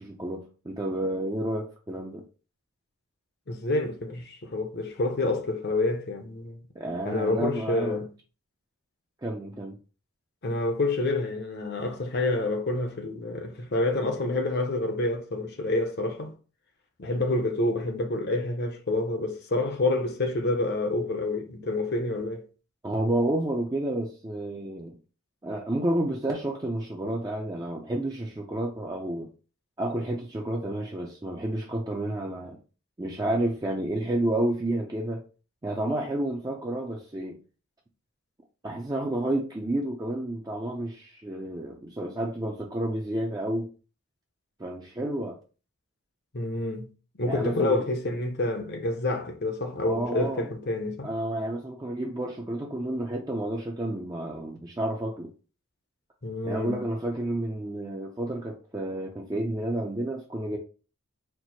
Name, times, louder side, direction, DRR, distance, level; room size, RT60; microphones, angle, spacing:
voice 1, 0.0-2.2 6.8-8.0 9.2-9.7 22.8-24.9 25.4-29.3 29.8-32.6 33.0-35.2 35.6-37.4 38.6-43.7 44.6-45.4 47.2-47.9 49.8-50.5 51.0-55.3 56.4-60.6, right 1 dB, 15° right, 0.4 m, -30 dB
voice 2, 3.5-6.6 7.0-8.1 10.4-16.3 17.0-22.5 46.3-46.9 47.2-51.1 56.2-56.8, left 2 dB, 45° left, 0.7 m, -28 dB
4.4 x 2.0 x 4.2 m
head